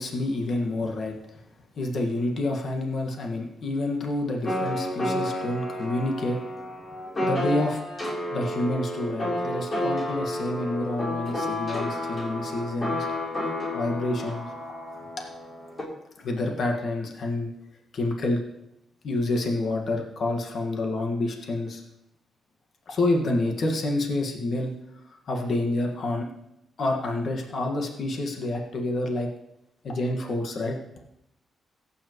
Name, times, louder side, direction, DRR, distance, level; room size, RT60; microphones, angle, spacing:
voice 1, 0.0-1.4 1.8-6.4 7.2-7.8 8.3-13.1 13.4-14.5 16.2-17.5 17.9-18.4 19.0-21.8 22.9-24.7 25.1-26.3 26.8-29.3 29.8-30.8, left 2 dB, 55° left, 1 dB, 1.7 m, -28 dB
sound 1, 4.4-15.8, left 1 dB, 30° left, 3.5 m, -31 dB
17.0 x 8.8 x 3.1 m, 0.83 s
cardioid pair, 115°, 0 cm